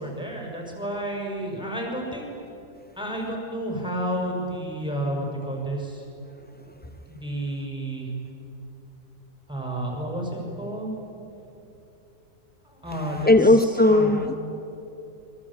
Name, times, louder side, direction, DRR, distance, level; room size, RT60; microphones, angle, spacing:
voice 1, 0.0-2.3 3.0-6.0 7.1-8.1 9.5-10.9 12.6-14.1, right 1 dB, 5° right, 0 dB, 6.1 m, -31 dB
voice 2, 13.3-14.4, left 2 dB, 15° left, 8 dB, 0.3 m, -17 dB
27.0 x 23.5 x 8.8 m, 2.9 s
omnidirectional pair, 1.5 m